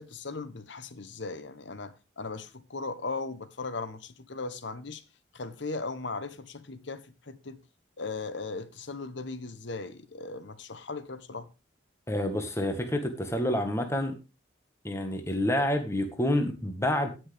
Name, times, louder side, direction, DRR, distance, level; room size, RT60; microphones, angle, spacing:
voice 1, 0.0-5.0 5.3-7.6 8.0-11.5, left 3 dB, 65° left, 1.0 m, -38 dB
voice 2, 12.1-14.1 14.8-17.1, left 1 dB, 15° left, 1.6 m, -28 dB
16.5 x 6.2 x 3.5 m
head